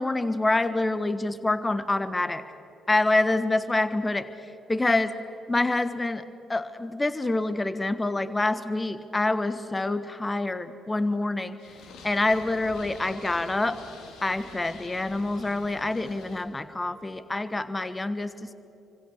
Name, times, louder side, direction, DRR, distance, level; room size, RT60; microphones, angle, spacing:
voice 1, 0.0-2.4 2.9-4.3 4.7-5.2 5.5-6.2 6.5-11.6 12.0-13.8 14.2-18.5, left 2 dB, 20° left, 13 dB, 1.4 m, -26 dB
Purr, 11.6-16.4, left 3 dB, 65° left, 2.7 m, -46 dB
26.0 x 25.5 x 6.6 m, 3.0 s
figure-of-eight pair, 40°, 0 cm